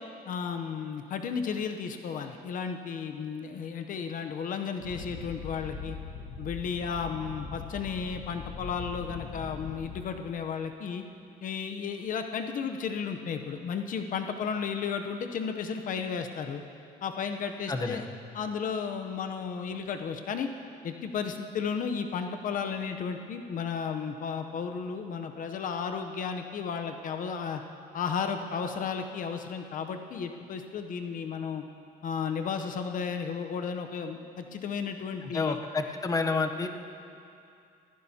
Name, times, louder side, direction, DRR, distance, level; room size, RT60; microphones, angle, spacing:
voice 1, 0.3-6.0 6.4-11.0 11.4-16.6 17.0-18.0 18.3-20.5 20.8-27.6 27.9-31.6 32.0-35.6 36.6-36.7, left 6 dB, 50° left, 6 dB, 0.8 m, -33 dB
sound 1, 4.8-10.0, left 5 dB, 90° left, 1.4 m, -41 dB
voice 2, 17.7-18.1 35.2-36.7, left 4 dB, 20° left, 5 dB, 0.8 m, -29 dB
20.0 x 15.0 x 2.8 m, 2.5 s
cardioid pair, 110°, 17 cm